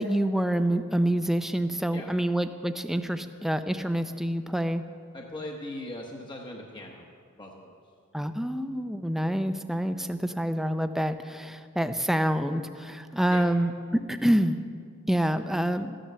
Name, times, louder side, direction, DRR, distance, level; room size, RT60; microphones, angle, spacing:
voice 1, 0.0-4.8 8.1-14.6 15.1-16.0, right 1 dB, ahead, 9 dB, 0.4 m, -27 dB
voice 2, 5.1-7.1 7.3-7.8 13.3-13.4, left 1 dB, 20° left, 0 dB, 0.9 m, -40 dB
14.0 x 10.0 x 6.6 m, 2.2 s
head